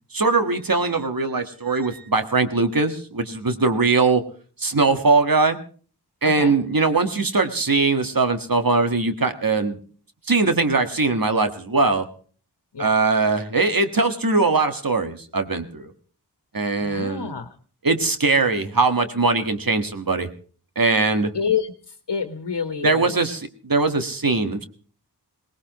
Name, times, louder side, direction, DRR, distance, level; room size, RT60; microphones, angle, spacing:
voice 1, 0.1-4.2 4.6-5.6 6.2-9.8 10.3-12.1 12.8-15.9 16.5-17.4 17.8-20.3 20.8-21.3 22.8-24.7, right 3 dB, 55° right, 7 dB, 1.7 m, -21 dB
voice 2, 6.2-6.5 12.7-12.9 16.6-17.5 21.3-21.7 22.1-23.2, left 6 dB, 85° left, 8 dB, 1.3 m, -27 dB
23.0 x 19.0 x 3.1 m, 0.42 s
wide cardioid pair, 60°, 40 cm